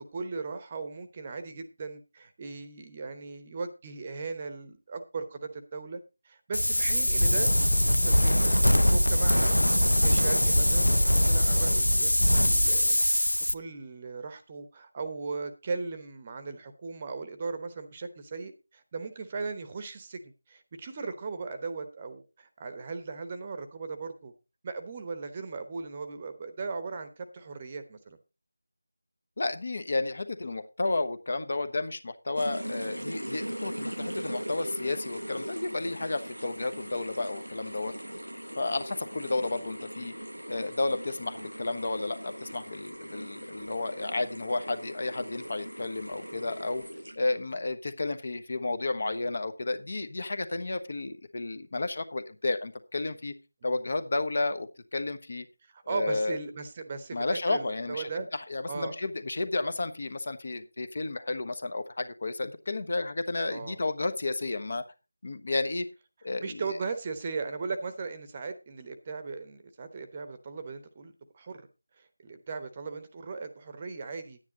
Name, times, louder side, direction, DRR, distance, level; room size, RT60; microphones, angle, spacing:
voice 1, 0.0-7.5 8.0-9.6 10.0-13.3 13.5-24.3 24.6-28.2 46.3-46.5 53.6-53.7 55.7-58.3 58.7-59.0 63.5-63.8 66.4-71.7 72.0-74.4, right 4 dB, 20° right, 9 dB, 1.0 m, -38 dB
Wind, 6.5-13.5, left 1 dB, 80° left, 0.6 m, -22 dB
voice 2, 29.4-37.9 38.6-40.1 40.5-46.8 47.2-53.3 53.6-55.5 55.9-56.4 57.1-64.8 65.2-65.9 66.2-66.8, left 2 dB, 40° left, 11 dB, 1.1 m, -32 dB
sound 1, 32.4-47.4, equal, 90° right, 0.7 m, -40 dB
10.5 x 9.7 x 4.0 m, 0.28 s
figure-of-eight pair, 165°, 0 cm